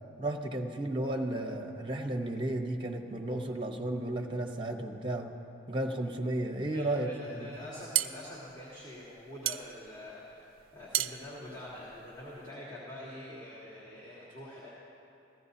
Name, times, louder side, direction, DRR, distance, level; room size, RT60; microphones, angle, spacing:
voice 1, 0.2-5.3 5.7-7.5, right 1 dB, 25° right, 3 dB, 0.8 m, -33 dB
voice 2, 6.7-14.7, left 1 dB, 20° left, -9 dB, 1.7 m, -45 dB
sound 1, 7.6-12.5, right 13 dB, 80° right, 0.4 m, -35 dB
15.5 x 15.0 x 2.7 m, 2.9 s
head